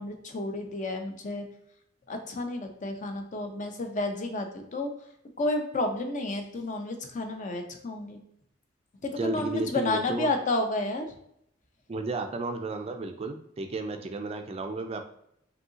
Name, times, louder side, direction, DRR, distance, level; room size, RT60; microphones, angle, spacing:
voice 1, 0.0-1.5 2.1-4.9 5.4-8.2 9.0-11.1, left 2 dB, 40° left, 5 dB, 0.6 m, -31 dB
voice 2, 9.2-10.3 11.9-15.0, right 3 dB, 30° right, 6 dB, 0.4 m, -33 dB
5.3 x 2.7 x 2.8 m, 0.73 s
head